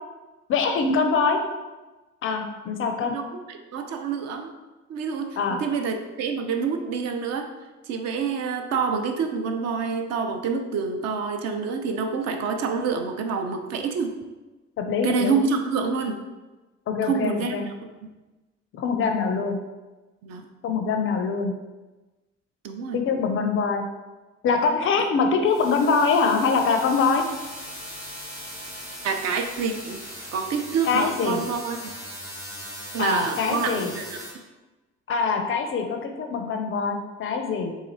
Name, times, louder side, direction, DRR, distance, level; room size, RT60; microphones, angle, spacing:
voice 1, 0.5-1.4 2.2-3.1 5.4-5.6 14.8-15.4 16.9-17.7 18.7-19.6 20.6-21.5 22.9-23.8 24.4-27.2 30.8-31.4 33.0-33.9 35.1-37.8, left 5 dB, 35° left, 5 dB, 0.4 m, -23 dB
voice 2, 3.0-4.5 4.9-7.5 7.9-14.2 15.0-16.2 17.0-17.6 20.2-20.5 22.6-23.2 29.0-30.0 30.3-31.9 32.9-34.2, right 5 dB, 45° right, 5 dB, 0.4 m, -27 dB
sound 1, 25.5-34.3, equal, 80° right, 1.4 m, -39 dB
3.9 x 2.4 x 2.7 m, 1.2 s
figure-of-eight pair, 50°, 36 cm